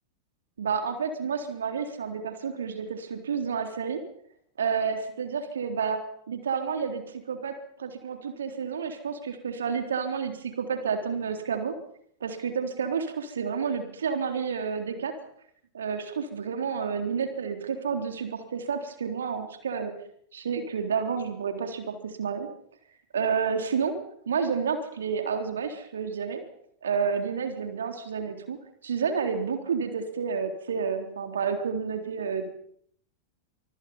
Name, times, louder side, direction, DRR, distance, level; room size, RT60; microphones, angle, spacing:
voice 1, 0.6-4.0 4.6-6.0 6.3-11.7 12.2-15.1 15.7-19.9 20.3-22.5 23.1-23.9 24.3-26.4 26.8-28.6 28.8-32.5, right 6 dB, 65° right, 6 dB, 3.7 m, -30 dB
25.5 x 24.5 x 5.6 m, 0.66 s
figure-of-eight pair, 90°, 0 cm